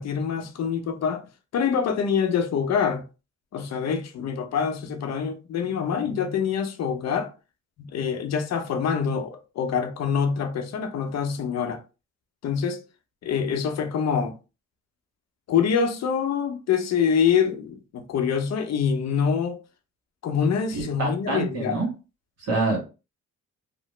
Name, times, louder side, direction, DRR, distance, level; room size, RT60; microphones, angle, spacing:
voice 1, 0.0-3.0 3.5-7.3 7.9-11.8 12.4-12.8 13.2-14.4 15.5-19.6 20.2-21.9, left 7 dB, 60° left, 0.7 m, -25 dB
voice 2, 20.7-21.9 22.4-22.8, right 2 dB, 60° right, 1.5 m, -26 dB
2.8 x 2.0 x 3.2 m
cardioid pair, 90°, 30 cm